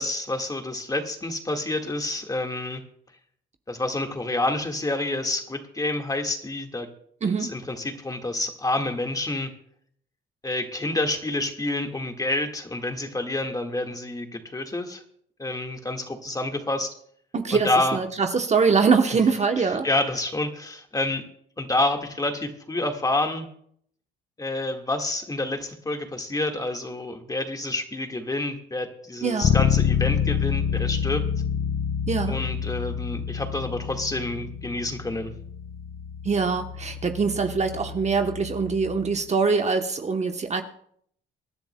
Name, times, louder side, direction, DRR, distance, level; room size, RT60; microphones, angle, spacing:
voice 1, 0.0-2.8 3.7-6.9 7.4-9.5 10.4-15.0 15.4-16.9 17.5-18.0 19.1-19.2 19.6-21.2 21.6-23.5 24.4-31.2 32.3-35.3, left 2 dB, 20° left, 4 dB, 1.7 m, -28 dB
voice 2, 17.3-19.9 29.2-29.5 32.1-32.4 36.2-40.6, right 5 dB, 35° right, 6 dB, 0.9 m, -23 dB
Bass guitar, 29.4-39.2, left 8 dB, 45° left, 0.6 m, -28 dB
25.0 x 10.5 x 2.2 m, 0.64 s
cardioid pair, 90°, 20 cm